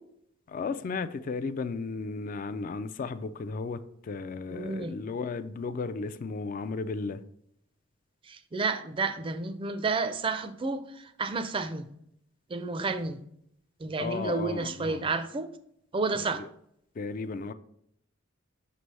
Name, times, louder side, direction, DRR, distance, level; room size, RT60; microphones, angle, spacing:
voice 1, 0.5-7.2 14.0-15.1 16.3-16.5 17.0-17.5, left 4 dB, 45° left, 0.3 m, -34 dB
voice 2, 4.5-5.0 8.2-11.9 12.5-13.2 13.8-15.5 15.9-16.4, right 3 dB, 25° right, 0.4 m, -31 dB
6.0 x 3.3 x 5.3 m
head